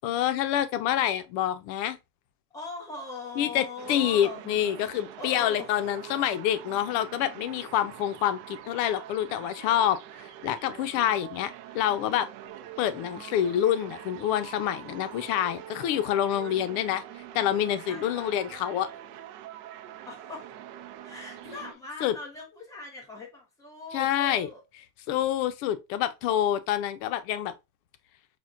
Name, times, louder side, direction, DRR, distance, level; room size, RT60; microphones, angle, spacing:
voice 1, 0.0-2.0 3.4-10.0 10.4-12.3 12.8-17.0 17.3-18.9 22.0-22.1 23.9-24.5 25.1-27.5, left 11 dB, 90° left, 0.6 m, -27 dB
voice 2, 2.5-4.4 4.8-5.9 11.0-11.1 16.4-16.8 17.9-18.4 20.1-20.5 21.0-24.6, left 2 dB, 5° left, 0.8 m, -41 dB
sound 1, 3.8-21.7, right 12 dB, 60° right, 0.5 m, -44 dB
5.9 x 2.2 x 2.5 m
cardioid pair, 175°, 49 cm